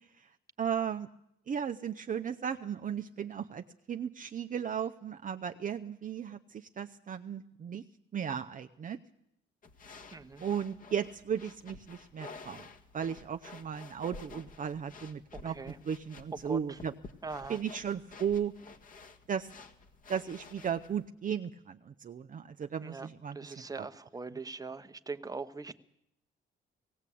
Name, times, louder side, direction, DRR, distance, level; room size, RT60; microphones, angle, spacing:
voice 1, 0.6-1.1 1.5-7.8 8.1-9.0 10.4-12.7 12.9-15.6 15.8-16.9 17.5-18.5 19.3-19.5 20.1-23.8, right 8 dB, 40° right, 7 dB, 0.7 m, -36 dB
sound 1, 9.6-21.1, left 3 dB, 40° left, 1.9 m, -51 dB
voice 2, 10.1-10.4 15.3-15.8 16.4-16.8 17.2-17.6 22.8-25.8, right 4 dB, 20° right, 9 dB, 1.1 m, -41 dB
18.5 x 16.5 x 8.5 m, 0.78 s
cardioid pair, 90°, 20 cm